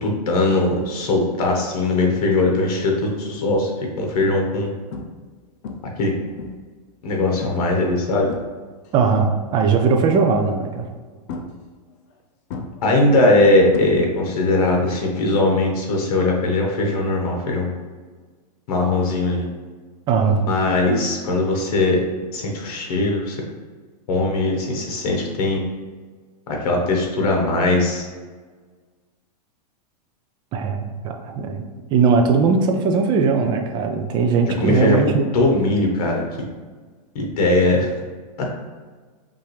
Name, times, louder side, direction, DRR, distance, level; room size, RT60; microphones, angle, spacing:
voice 1, 0.0-3.7 4.0-4.7 6.0-6.1 7.0-8.3 12.8-17.7 18.7-19.5 20.4-22.0 22.3-23.4 24.1-25.6 26.5-28.0 34.6-36.2 37.1-37.9 38.4-38.5, left 2 dB, 60° left, 1 dB, 1.2 m, -20 dB
sound 1, 2.6-2.9 3.5-3.6 4.2-4.6 4.9-5.3 5.6-6.8 7.4-7.7 8.1-8.9 10.1-10.6 11.3-12.2 12.5-14.4 14.6-15.1 17.1-17.2, left 4 dB, 45° left, 0.6 m, -35 dB
voice 2, 8.9-10.9 20.1-20.4 30.5-35.3, right 5 dB, 20° right, 4 dB, 0.4 m, -19 dB
5.5 x 2.6 x 3.3 m, 1.5 s
supercardioid pair, 145°, 21 cm